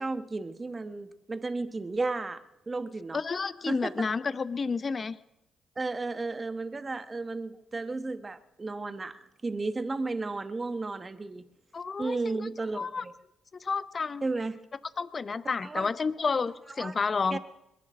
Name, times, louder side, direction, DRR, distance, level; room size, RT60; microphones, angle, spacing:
voice 1, 0.0-3.2 3.7-4.0 5.8-11.5 12.0-13.1 14.2-14.7 15.6-15.9 16.8-16.9 17.3-17.4, right 3 dB, 30° right, 11 dB, 1.1 m, -33 dB
voice 2, 3.1-5.2 11.7-12.5 12.8-13.0 13.5-14.2 15.0-17.4, left 4 dB, 40° left, 15 dB, 0.8 m, -30 dB
21.5 x 10.5 x 6.4 m, 0.89 s
supercardioid pair, 55°, 0 cm